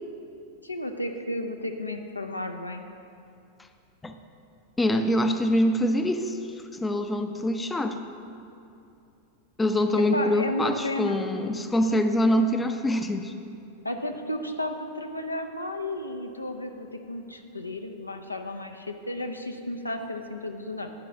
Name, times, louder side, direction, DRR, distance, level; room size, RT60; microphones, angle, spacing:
voice 1, 0.6-2.8 10.1-11.3 13.8-20.9, left 1 dB, 85° left, 5 dB, 0.5 m, -33 dB
voice 2, 4.8-6.4 6.8-8.0 9.6-13.3, left 1 dB, 10° left, 7 dB, 0.5 m, -24 dB
8.8 x 4.9 x 6.9 m, 2.6 s
figure-of-eight pair, 90°, 0 cm